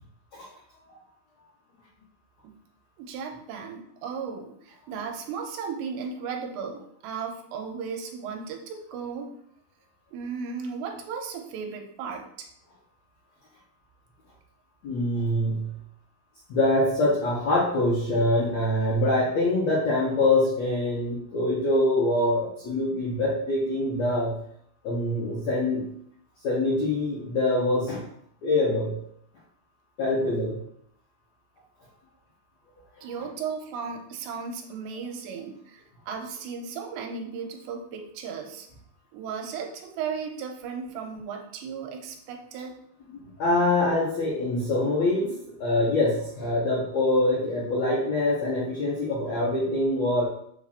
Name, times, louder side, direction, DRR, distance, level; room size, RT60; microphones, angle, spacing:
voice 1, 3.0-9.3 10.1-12.5 33.0-38.7 39.1-42.8, right 6 dB, 90° right, 3 dB, 2.8 m, -35 dB
voice 2, 14.8-15.7 16.5-24.4 24.8-25.8 26.4-28.0 28.4-29.0 30.0-30.6 43.4-50.3, left 1 dB, 80° left, -5 dB, 1.5 m, -24 dB
6.9 x 2.5 x 5.6 m, 0.69 s
omnidirectional pair, 5.0 m